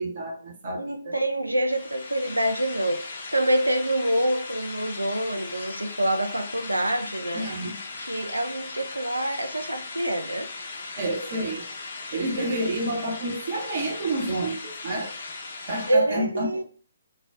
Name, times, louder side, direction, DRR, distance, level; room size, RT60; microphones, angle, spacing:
voice 1, 0.0-1.1 7.3-7.7 11.0-11.7 12.1-15.1 15.6-16.6, right 1 dB, 45° right, 0.7 m, -29 dB
voice 2, 0.7-7.5 8.1-10.5 15.9-16.6, right 1 dB, 85° right, 0.3 m, -26 dB
sound 1, 1.7-15.9, left 3 dB, 50° left, 0.5 m, -38 dB
2.2 x 2.0 x 3.4 m
figure-of-eight pair, 130°, 0 cm